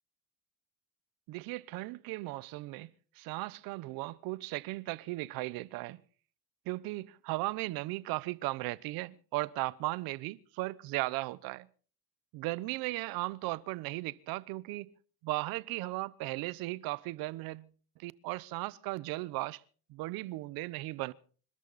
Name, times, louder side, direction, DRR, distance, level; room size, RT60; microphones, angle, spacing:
voice 1, 1.3-2.9 3.2-6.0 6.7-11.7 12.3-14.9 15.2-17.7 18.0-19.6 19.9-21.1, right 20 dB, 75° right, 0.9 m, -36 dB
27.0 x 13.0 x 4.1 m
cardioid pair, 115°, 36 cm